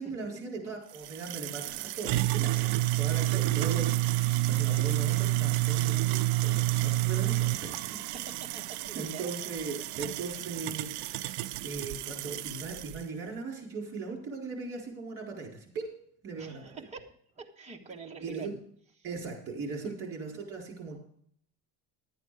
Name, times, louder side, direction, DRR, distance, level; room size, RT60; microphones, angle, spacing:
voice 1, 0.0-8.0 8.9-11.3 11.6-16.0 16.2-16.7 18.2-18.5 19.0-21.0, right 4 dB, 30° right, 0 dB, 4.2 m, -39 dB
sound 1, 0.9-13.0, right 17 dB, 60° right, 0.5 m, -29 dB
voice 2, 8.1-9.3 16.4-18.5 19.8-19.9, right 5 dB, 15° right, -1 dB, 1.3 m, -45 dB
11.5 x 9.1 x 4.9 m, 0.63 s
cardioid pair, 170°, 45 cm